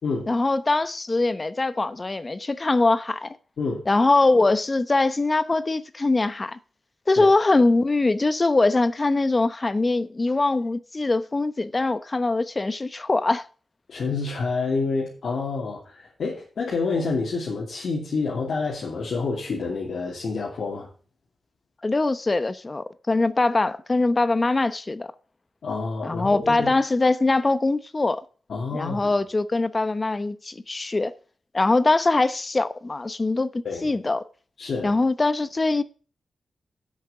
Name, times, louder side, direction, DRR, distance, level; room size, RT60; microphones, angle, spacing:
voice 1, 0.3-3.4 3.9-6.6 7.1-13.5 21.8-25.1 26.0-28.2 28.7-31.1 31.5-34.2 34.8-35.8, left 2 dB, 35° left, 0.8 m, -22 dB
voice 2, 13.9-20.9 25.6-26.7 28.5-29.1 33.6-33.9 34.6-34.9, left 4 dB, 75° left, 2.7 m, -28 dB
8.2 x 6.5 x 7.9 m
cardioid pair, 60°, 0 cm